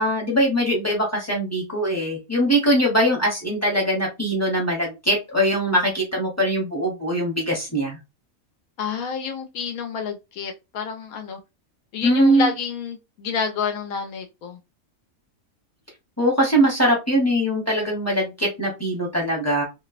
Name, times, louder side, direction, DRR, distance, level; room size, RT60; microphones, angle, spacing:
voice 1, 0.0-8.0 12.0-12.5 16.2-19.6, right 1 dB, 15° left, 0.7 m, -21 dB
voice 2, 8.8-11.4 11.9-14.6, left 6 dB, 80° left, 1.1 m, -29 dB
2.9 x 2.0 x 2.4 m
omnidirectional pair, 1.5 m